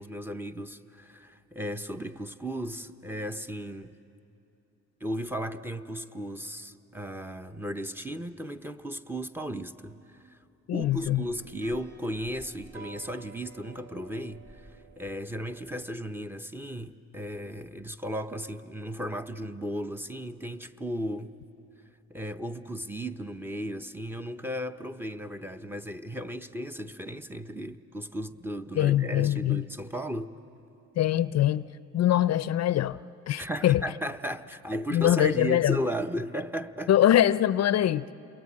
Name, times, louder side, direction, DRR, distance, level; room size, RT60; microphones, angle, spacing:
voice 1, 0.0-3.9 5.0-10.0 10.2-10.4 10.7-14.7 15.0-21.4 22.1-30.3 33.4-36.9, equal, 5° right, 0.8 m, -35 dB
voice 2, 10.7-11.2 28.8-29.7 31.0-31.6 31.9-33.0 33.3-33.8 34.9-35.8 36.9-38.1, left 12 dB, 60° left, 0.5 m, -23 dB
sound 1, 10.8-15.8, right 4 dB, 40° right, 2.4 m, -51 dB
28.5 x 22.0 x 8.7 m
cardioid pair, 90°, 30 cm